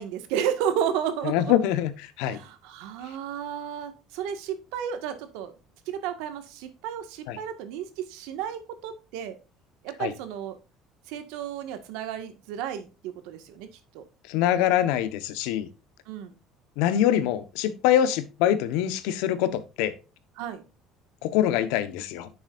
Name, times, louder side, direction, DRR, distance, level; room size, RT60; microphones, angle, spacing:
voice 1, 0.0-1.5 2.3-5.5 5.9-9.4 9.8-10.6 11.1-13.7 13.9-14.0 16.1-16.4 20.4-20.6, right 9 dB, 80° right, 1.7 m, -32 dB
voice 2, 1.2-2.4 7.3-7.4 10.0-10.1 14.3-15.7 16.8-19.9 21.2-22.3, left 11 dB, 80° left, 1.2 m, -24 dB
10.0 x 7.2 x 2.6 m
cardioid pair, 150°, 0 cm